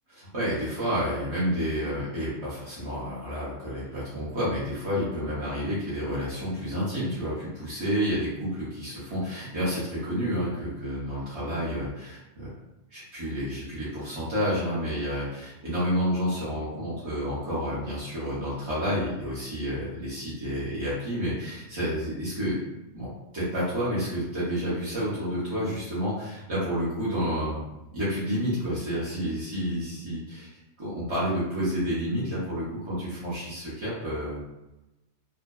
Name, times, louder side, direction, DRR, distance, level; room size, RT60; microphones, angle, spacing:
voice 1, 0.1-12.5 12.9-22.6 22.9-27.6 27.9-30.5 30.8-34.4, equal, 35° right, -10 dB, 0.4 m, -30 dB
2.6 x 2.1 x 2.2 m, 0.98 s
omnidirectional pair, 1.5 m